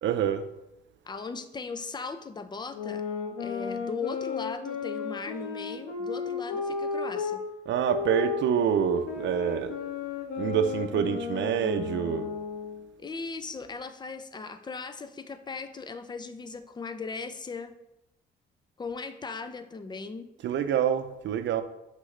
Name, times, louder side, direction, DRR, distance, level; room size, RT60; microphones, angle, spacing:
voice 1, 0.0-0.4 7.7-9.8 10.4-12.3 20.4-21.6, right 9 dB, 70° right, 0.6 m, -26 dB
voice 2, 1.0-3.0 3.4-7.4 13.0-17.7 18.8-20.3, left 4 dB, 20° left, 0.5 m, -38 dB
sound 1, 2.7-7.4 7.8-12.8, left 5 dB, 70° left, 1.1 m, -34 dB
6.2 x 5.3 x 3.2 m
cardioid pair, 90°, 20 cm